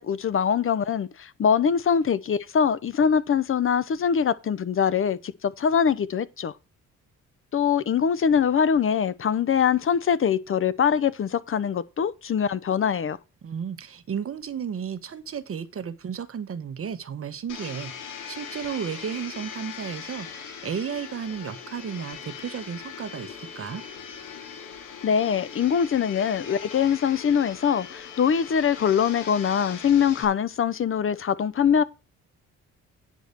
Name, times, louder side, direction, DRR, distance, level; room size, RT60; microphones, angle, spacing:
voice 1, 0.0-6.5 7.5-13.2 25.0-31.8, left 7 dB, 45° left, 0.8 m, -23 dB
voice 2, 13.4-23.8, right 7 dB, 45° right, 1.3 m, -33 dB
Domestic sounds home sounds, 17.5-30.2, left 7 dB, 85° left, 3.0 m, -40 dB
9.6 x 5.2 x 6.8 m
cardioid pair, 90°, 30 cm